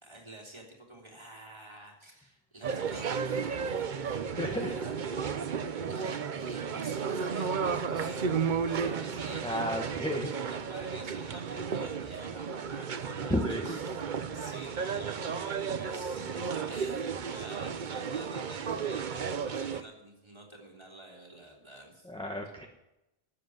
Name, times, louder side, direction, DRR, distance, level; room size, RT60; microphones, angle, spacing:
voice 1, 0.0-5.3 5.8-13.4 13.6-14.0 14.3-22.1, right 1 dB, 25° right, -1 dB, 3.3 m, -50 dB
sound 1, 2.6-19.8, right 6 dB, 50° right, 0.9 m, -33 dB
voice 2, 4.3-4.8 9.4-10.3 13.2-13.8 22.0-22.7, equal, 5° left, 2 dB, 1.1 m, -32 dB
13.0 x 7.8 x 9.3 m, 0.92 s
omnidirectional pair, 1.1 m